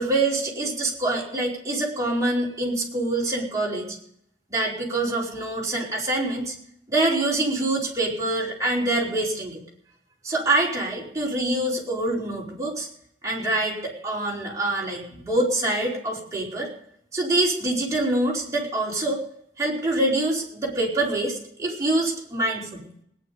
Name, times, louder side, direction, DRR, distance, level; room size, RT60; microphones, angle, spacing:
voice 1, 0.0-4.0 4.5-6.5 6.9-9.6 10.2-12.9 13.2-16.7 17.1-19.2 19.6-22.9, right 2 dB, 20° right, -4 dB, 4.6 m, -25 dB
18.5 x 10.5 x 5.4 m, 0.68 s
head